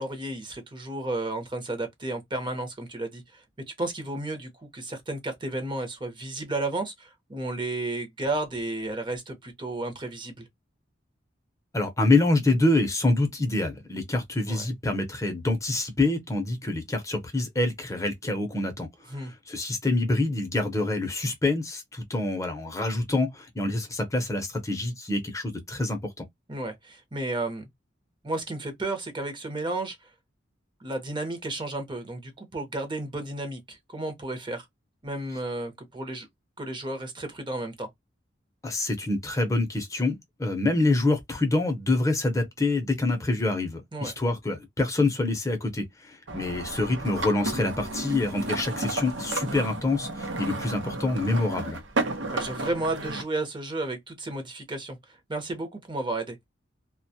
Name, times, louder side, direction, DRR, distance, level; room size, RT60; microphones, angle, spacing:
voice 1, 0.0-3.4 3.8-10.5 14.5-14.6 19.1-19.3 26.5-27.6 28.2-30.1 30.8-34.7 35.0-36.3 36.6-37.9 43.9-44.1 52.3-56.4, right 2 dB, 25° right, 0.7 m, -33 dB
voice 2, 11.7-26.2 38.6-51.8, left 2 dB, 15° left, 0.7 m, -26 dB
sound 1, 46.3-53.2, right 2 dB, 75° right, 0.7 m, -32 dB
2.2 x 2.1 x 2.6 m
head